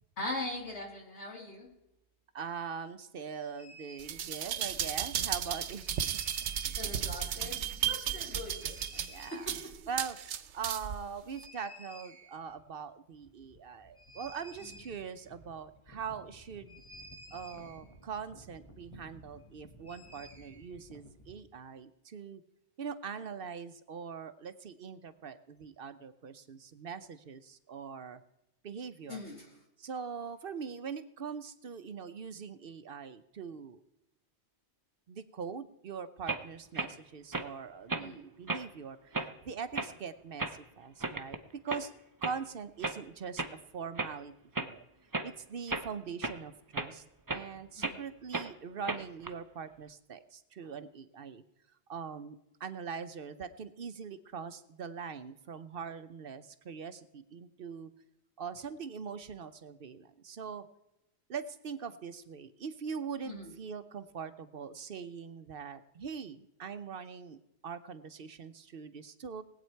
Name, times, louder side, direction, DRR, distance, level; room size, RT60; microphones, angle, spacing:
voice 1, 0.2-1.7 6.8-8.8 9.3-9.7 29.1-29.5 38.0-38.2 47.8-48.0 63.2-63.5, left 2 dB, 80° left, -1 dB, 3.3 m, -41 dB
voice 2, 2.3-5.9 9.1-9.5 9.9-10.2 10.5-16.7 17.3-22.4 22.8-28.2 28.6-29.2 29.8-33.8 35.1-41.4 41.6-41.9 42.2-43.4 43.7-44.3 44.6-44.8 45.2-51.4 51.9-57.9 58.4-60.7 61.3-67.4 67.6-69.4, right 6 dB, 60° right, 11 dB, 0.9 m, -42 dB
sound 1, 3.6-4.3 5.8-7.0 8.6-9.7 11.3-12.6 12.9-13.0 13.1-21.4, equal, 25° left, 1.5 m, -53 dB
sound 2, 4.0-11.0 11.4-11.5, right 9 dB, 90° right, 1.0 m, -34 dB
sound 3, 36.3-36.4 36.7-36.9 37.3-37.5 37.9-38.1 38.5-38.6 39.1-39.3 39.7-39.9 40.4-40.6 41.0-41.4 41.7-41.8 42.2-42.4 42.8-43.0 43.4-43.5 44.0-44.1 44.5-44.7 45.1-45.3 45.7-45.9 46.2-46.4 46.7-46.9 47.3-47.4 47.8-48.0 48.3-48.5 48.8-49.3, right 3 dB, 20° right, 0.7 m, -34 dB
19.5 x 8.5 x 4.5 m, 0.88 s
omnidirectional pair, 1.2 m